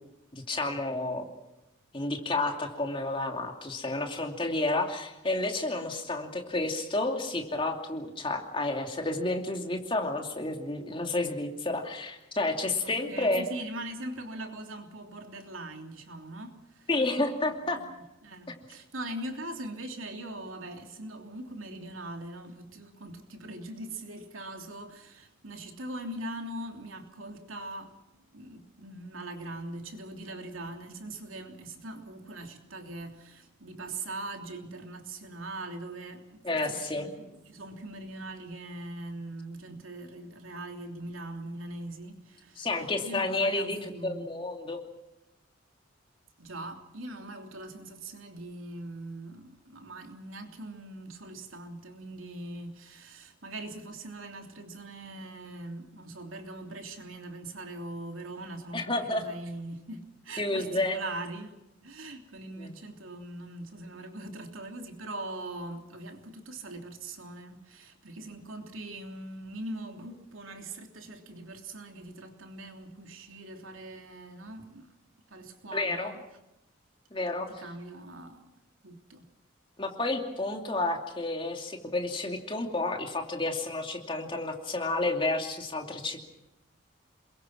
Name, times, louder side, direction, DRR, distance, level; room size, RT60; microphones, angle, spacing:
voice 1, 0.3-1.2 1.9-13.4 16.9-17.8 36.4-37.1 42.6-43.8 44.0-44.8 58.7-59.3 60.4-61.0 62.6-62.7 75.7-76.1 77.1-77.5 79.8-86.2, left 2 dB, 25° left, 2.7 m, -30 dB
voice 2, 12.7-16.9 17.5-28.0 28.3-42.7 43.0-44.3 46.4-61.5 61.8-74.9 75.3-76.2 77.5-78.5 78.8-79.3, right 2 dB, 90° right, 3.1 m, -41 dB
28.5 x 22.0 x 6.0 m
head